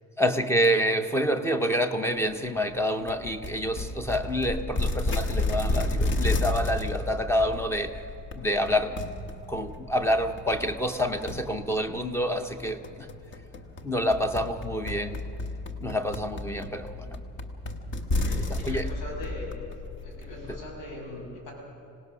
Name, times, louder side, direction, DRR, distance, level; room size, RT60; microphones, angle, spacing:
voice 1, 0.2-8.1 8.3-9.0 9.5-13.1 13.8-15.2 15.8-17.1 18.4-18.9 20.4-20.6, equal, 10° left, 8 dB, 0.6 m, -27 dB
sound 1, 3.1-20.5, left 2 dB, 35° left, 1.1 m, -32 dB
voice 2, 16.7-17.1 18.2-19.5 20.0-21.5, left 1 dB, 85° left, 0 dB, 6.6 m, -41 dB
26.0 x 18.0 x 6.2 m, 2.9 s
cardioid pair, 180°, 32 cm